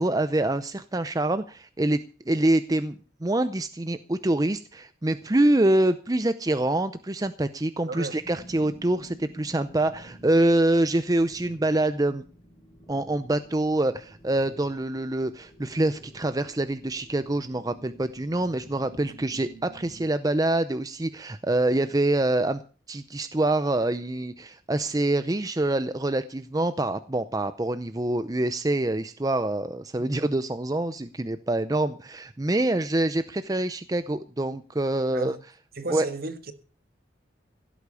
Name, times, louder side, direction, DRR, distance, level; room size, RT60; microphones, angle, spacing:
voice 1, 0.0-2.0 2.3-12.2 12.9-22.6 22.9-35.3 35.9-36.1, right 1 dB, 20° right, 0.6 m, -25 dB
voice 2, 7.9-8.2 35.1-35.4 35.7-36.5, right 3 dB, 55° right, 1.7 m, -33 dB
sound 1, 8.1-20.1, right 1 dB, 10° left, 4.8 m, -50 dB
16.5 x 8.3 x 6.9 m
head